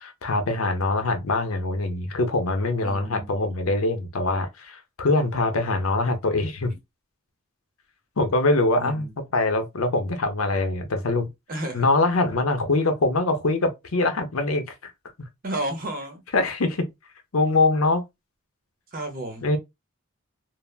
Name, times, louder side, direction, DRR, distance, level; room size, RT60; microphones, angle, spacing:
voice 1, 0.0-6.7 8.2-11.3 11.7-14.9 16.3-16.9 17.3-18.0 19.4-19.6, left 2 dB, 75° left, 0.7 m, -23 dB
voice 2, 2.8-3.5 8.8-9.1 11.5-11.9 15.4-16.2 18.9-19.5, right 1 dB, 40° right, 0.8 m, -32 dB
3.3 x 2.0 x 2.3 m
head